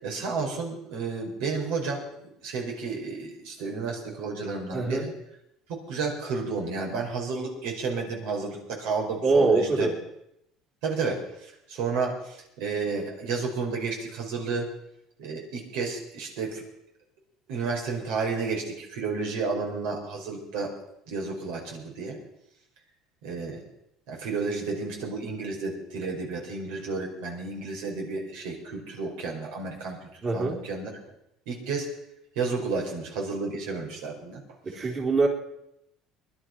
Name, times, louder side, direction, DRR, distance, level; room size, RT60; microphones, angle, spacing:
voice 1, 0.0-5.1 5.7-9.9 10.8-14.7 15.2-16.6 17.5-20.8 21.1-22.2 23.2-23.6 24.1-30.0 30.3-30.9 31.5-31.9 32.4-34.4, right 4 dB, 80° right, 0 dB, 5.2 m, -31 dB
voice 2, 4.7-5.1 9.2-9.9 30.2-30.6 34.6-35.3, right 3 dB, 30° right, -2 dB, 3.7 m, -23 dB
20.5 x 11.5 x 6.0 m, 0.80 s
cardioid pair, 125°, 0 cm